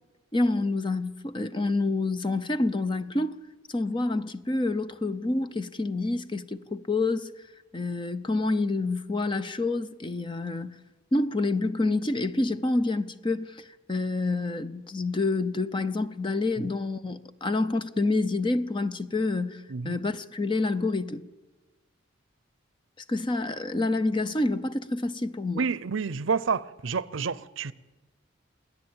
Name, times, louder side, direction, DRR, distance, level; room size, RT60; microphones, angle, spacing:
voice 1, 0.3-3.3 3.7-7.3 7.7-10.8 11.1-21.2 23.1-25.7, left 2 dB, 25° left, 0.6 m, -28 dB
voice 2, 25.6-27.7, right 5 dB, 65° right, 0.6 m, -29 dB
28.5 x 10.5 x 8.8 m
head